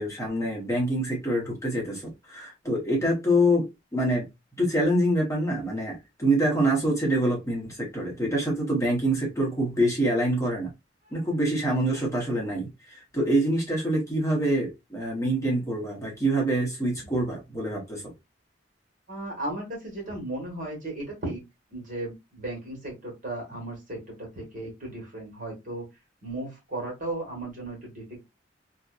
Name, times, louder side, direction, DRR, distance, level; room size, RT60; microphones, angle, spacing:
voice 1, 0.0-3.7 3.9-4.3 4.6-10.7 11.1-18.0, right 1 dB, 15° left, -2 dB, 0.9 m, -26 dB
voice 2, 19.1-21.4 21.7-25.9 26.2-28.2, right 2 dB, 45° right, 0 dB, 1.3 m, -35 dB
2.6 x 2.1 x 2.3 m, 0.22 s
head